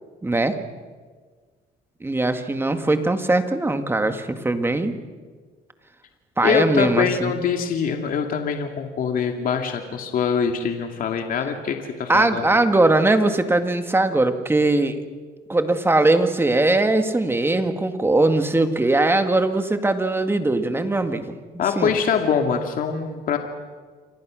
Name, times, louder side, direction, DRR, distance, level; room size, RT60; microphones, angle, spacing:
voice 1, 0.2-0.6 2.0-5.0 6.4-7.3 12.1-15.0 15.5-21.4 21.8-21.9, right 2 dB, 15° right, 7 dB, 2.1 m, -20 dB
voice 2, 6.4-12.5 21.6-23.4, left 7 dB, 55° left, 4 dB, 2.4 m, -23 dB
29.0 x 24.5 x 6.4 m, 1.5 s
cardioid pair, 110°, 17 cm